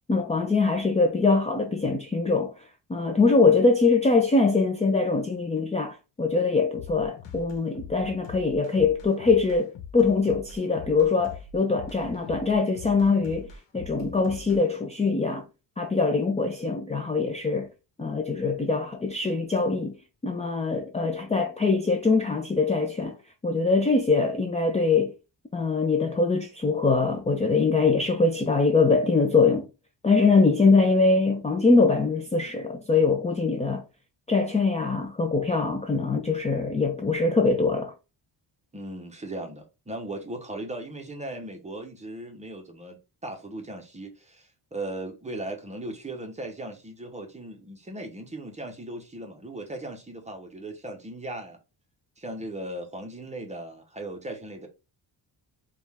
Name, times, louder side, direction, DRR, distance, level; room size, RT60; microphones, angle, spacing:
voice 1, 0.1-2.5 2.9-13.5 13.7-15.4 15.8-17.7 18.0-20.0 20.2-23.1 23.4-25.1 25.5-29.7 30.0-33.8 34.3-37.9, left 4 dB, 15° left, 0.4 m, -23 dB
sound 1, 6.7-14.6, left 5 dB, 70° left, 1.1 m, -43 dB
voice 2, 38.7-51.6 52.2-54.7, right 1 dB, 15° right, 0.8 m, -38 dB
5.1 x 2.4 x 3.4 m
cardioid pair, 135°, 44 cm